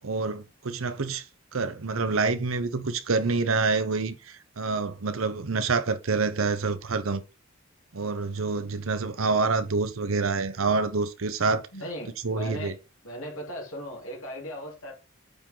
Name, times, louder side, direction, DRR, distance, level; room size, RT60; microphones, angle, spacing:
voice 1, 0.0-1.3 1.5-7.2 7.9-11.7 12.2-12.7, right 4 dB, 80° right, 0.8 m, -27 dB
voice 2, 11.7-12.7 13.0-14.9, equal, 85° left, 3.6 m, -37 dB
8.7 x 4.6 x 3.8 m
head